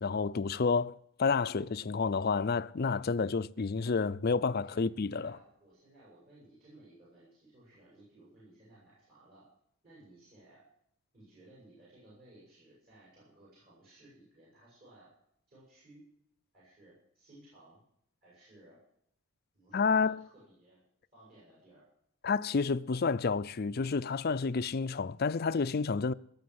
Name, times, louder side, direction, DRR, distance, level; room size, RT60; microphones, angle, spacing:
voice 1, 0.0-5.3 19.7-20.2 22.2-26.1, left 4 dB, 45° left, 0.5 m, -30 dB
voice 2, 4.6-9.5 9.8-10.6 11.1-15.1 15.5-16.0 16.5-17.8 18.2-18.8 19.5-20.8 21.1-21.8, right 1 dB, 40° right, 7.9 m, -58 dB
18.5 x 7.1 x 7.8 m
head